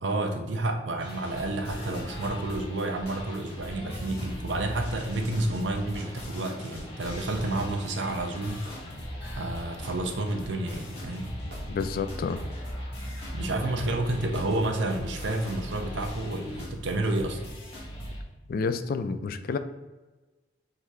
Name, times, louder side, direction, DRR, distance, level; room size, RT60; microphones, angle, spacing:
voice 1, 0.0-8.6 9.4-11.3 13.3-17.4, right 2 dB, 85° right, 5 dB, 0.7 m, -30 dB
sound 1, 1.0-18.2, equal, 35° left, 1.3 m, -39 dB
Hammer / Wood, 7.3-7.5 8.6-8.8 10.1-10.4 11.5-11.7, right 1 dB, 60° right, 0.9 m, -48 dB
voice 2, 11.7-12.4 18.5-19.6, left 4 dB, 55° left, 10 dB, 0.3 m, -29 dB
3.8 x 2.7 x 4.7 m, 1.2 s
head